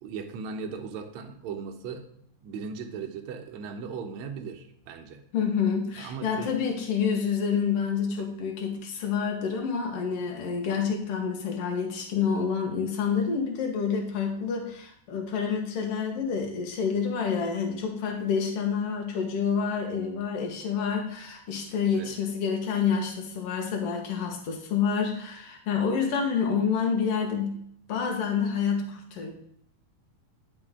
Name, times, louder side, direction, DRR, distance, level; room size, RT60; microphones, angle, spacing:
voice 1, 0.0-5.2 6.0-6.6 8.2-8.3 21.9-22.1, right 5 dB, 70° right, 3 dB, 1.9 m, -38 dB
voice 2, 5.3-27.6 27.9-29.3, left 6 dB, 55° left, 2 dB, 1.9 m, -28 dB
10.5 x 5.7 x 3.7 m, 0.68 s
omnidirectional pair, 4.1 m